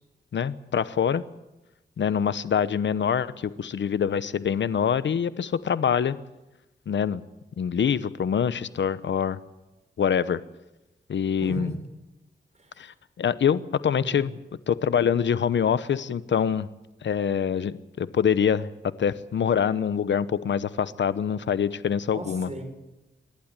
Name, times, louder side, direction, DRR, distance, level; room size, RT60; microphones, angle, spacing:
voice 1, 0.3-1.2 2.0-6.2 6.9-7.2 7.6-9.4 10.0-10.4 11.1-11.7 12.8-14.3 14.7-16.7 17.0-22.5, left 8 dB, 80° left, 15 dB, 0.9 m, -25 dB
voice 2, 11.4-11.7 12.5-12.8 13.9-14.3 22.1-22.6, right 2 dB, 35° right, 5 dB, 6.2 m, -36 dB
27.0 x 12.0 x 9.9 m, 1.0 s
cardioid pair, 65°, 19 cm